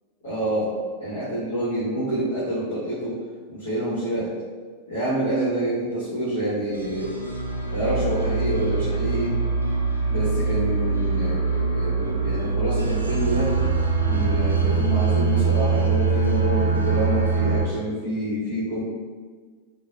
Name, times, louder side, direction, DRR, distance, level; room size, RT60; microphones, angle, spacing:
voice 1, 0.2-3.2 3.5-4.3 4.9-7.1 7.7-9.3 10.1-13.6 14.0-18.8, right 1 dB, 60° left, -12 dB, 1.0 m, -27 dB
sound 1, 6.7-17.7, right 4 dB, 80° right, 0.5 m, -23 dB
3.9 x 2.1 x 2.4 m, 1.5 s
figure-of-eight pair, 90°, 0 cm